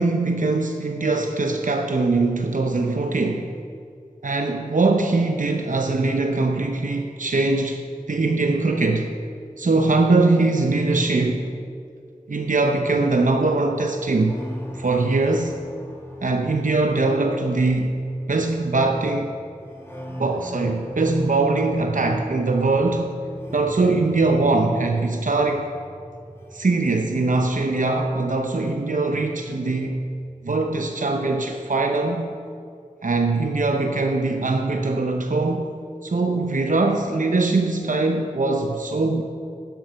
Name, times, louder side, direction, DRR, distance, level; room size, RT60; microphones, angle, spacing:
voice 1, 0.0-3.5 4.2-9.2 9.6-11.6 12.3-14.4 14.7-15.6 16.2-18.0 18.3-19.3 20.2-23.1 23.5-25.7 26.5-30.0 30.4-32.3 33.0-35.7 36.0-39.2, right 3 dB, 70° right, 3 dB, 0.7 m, -22 dB
sound 1, 14.2-29.1 29.4-30.2, equal, 15° left, 2.1 m, -38 dB
11.5 x 7.8 x 5.8 m, 2.4 s
wide cardioid pair, 40°, 14 cm